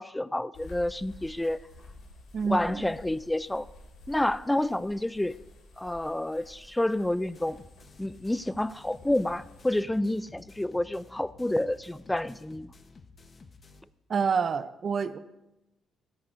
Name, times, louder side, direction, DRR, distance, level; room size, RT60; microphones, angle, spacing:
voice 1, 0.0-1.6 2.4-3.7 4.1-5.4 5.8-7.6 8.0-12.7, left 1 dB, 10° left, 17 dB, 0.3 m, -29 dB
sound 1, 0.5-9.7, left 1 dB, 80° left, 2.1 m, -51 dB
voice 2, 2.3-2.9 14.1-15.2, right 6 dB, 50° right, 14 dB, 0.5 m, -28 dB
sound 2, 7.2-13.8, left 3 dB, 35° left, 0.9 m, -53 dB
14.5 x 13.0 x 2.6 m, 0.97 s
cardioid pair, 90°, 0 cm